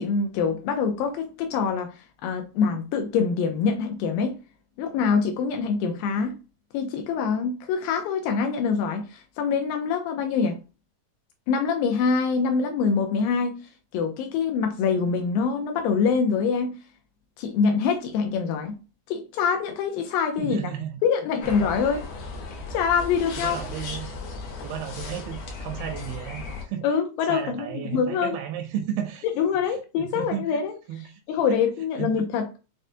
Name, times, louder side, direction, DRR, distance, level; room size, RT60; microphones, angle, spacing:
voice 1, 0.0-4.4 4.8-6.4 6.7-10.6 11.5-13.6 13.9-16.8 17.4-18.8 19.1-20.6 21.0-22.1 22.7-23.6 26.8-28.4 29.2-30.7 31.3-32.5, left 6 dB, 85° left, 2.3 m, -25 dB
voice 2, 20.4-21.0 21.6-21.7 23.4-24.2 24.6-26.8 27.3-29.3 29.7-30.6 30.9-31.1 31.5-31.6 32.0-32.1, right 10 dB, 90° right, 2.3 m, -33 dB
sound 1, 21.4-26.6, left 3 dB, 65° left, 1.9 m, -36 dB
6.1 x 2.0 x 2.7 m
omnidirectional pair, 4.0 m